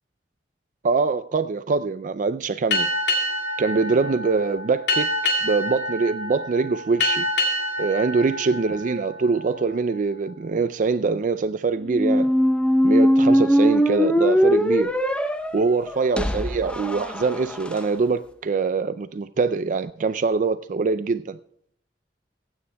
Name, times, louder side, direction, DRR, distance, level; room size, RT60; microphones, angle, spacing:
voice 1, 0.8-2.9 3.6-5.1 5.4-7.3 7.8-12.3 12.8-14.9 15.5-21.4, right 4 dB, 45° right, 0.4 m, -23 dB
Boat Water vehicle, 2.7-9.8, left 1 dB, 85° left, 2.5 m, -27 dB
sound 1, 11.9-17.8, equal, 5° left, 0.7 m, -20 dB
24.0 x 9.5 x 2.3 m
head